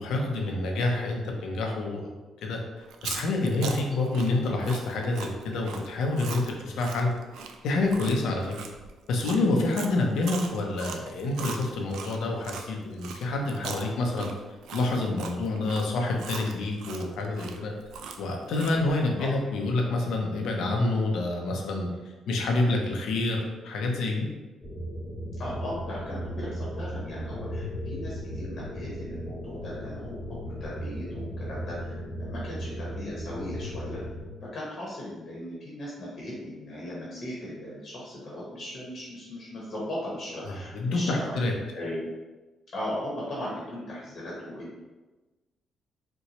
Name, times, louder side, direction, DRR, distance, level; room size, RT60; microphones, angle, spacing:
voice 1, 0.0-2.1 2.4-2.6 3.0-7.1 7.6-8.6 9.1-14.3 14.7-17.7 18.2-21.9 22.3-24.3 40.5-41.5, left 2 dB, 80° left, 1 dB, 0.6 m, -27 dB
Chewing mastication, 2.8-12.7 13.0-18.9, right 6 dB, 80° right, 0.3 m, -40 dB
sound 1, 24.6-34.3, equal, 10° left, 1.1 m, -36 dB
voice 2, 25.4-30.2 30.4-34.0 34.4-41.3 41.7-42.1 42.7-44.8, left 1 dB, 45° left, -6 dB, 1.0 m, -37 dB
4.2 x 2.2 x 2.9 m, 1.2 s
cardioid pair, 90°, 0 cm